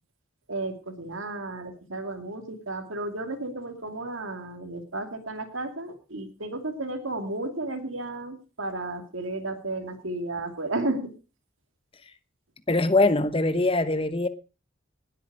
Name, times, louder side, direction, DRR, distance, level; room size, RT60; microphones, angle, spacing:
voice 1, 0.5-11.1, right 2 dB, 85° right, 2.5 m, -33 dB
voice 2, 12.7-14.3, left 2 dB, 25° left, 1.0 m, -22 dB
19.5 x 8.6 x 4.8 m
head